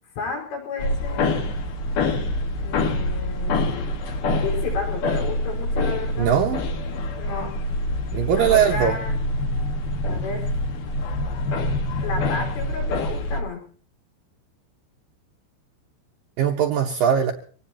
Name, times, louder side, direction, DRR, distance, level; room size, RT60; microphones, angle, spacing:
voice 1, 0.2-1.5 2.6-3.9 4.4-6.4 7.2-7.6 8.4-9.2 10.1-10.5 12.0-13.7, left 5 dB, 85° left, 1 dB, 7.7 m, -32 dB
sound 1, 0.8-13.4, left 2 dB, 60° left, 2.5 m, -26 dB
voice 2, 6.2-6.6 8.1-8.9 16.4-17.3, right 9 dB, 90° right, 2 dB, 2.0 m, -20 dB
25.0 x 18.0 x 3.0 m, 0.41 s
omnidirectional pair, 5.7 m